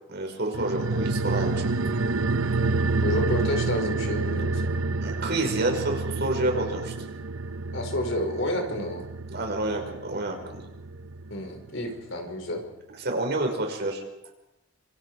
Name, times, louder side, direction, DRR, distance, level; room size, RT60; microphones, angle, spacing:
voice 1, 0.1-1.7 5.0-6.9 9.3-10.6 13.0-14.0, right 2 dB, 55° right, 2 dB, 5.5 m, -28 dB
sound 1, 0.5-11.4 11.7-11.8, right 3 dB, 90° right, 0.9 m, -28 dB
voice 2, 3.0-4.8 7.7-9.0 11.3-12.6, left 1 dB, 65° left, 3 dB, 5.3 m, -30 dB
27.5 x 27.0 x 5.0 m, 0.91 s
head